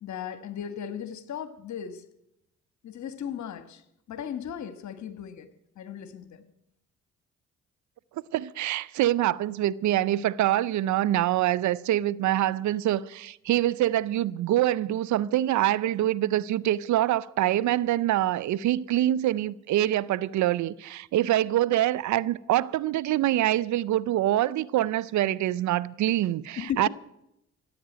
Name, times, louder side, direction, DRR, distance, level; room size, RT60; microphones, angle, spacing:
voice 1, 0.0-2.0 2.8-3.8 4.1-5.5 5.7-6.4 26.6-26.9, left 9 dB, 65° left, 1.4 m, -36 dB
voice 2, 8.3-26.9, right 13 dB, 65° right, 0.6 m, -25 dB
15.5 x 8.7 x 9.0 m
supercardioid pair, 55°, 31 cm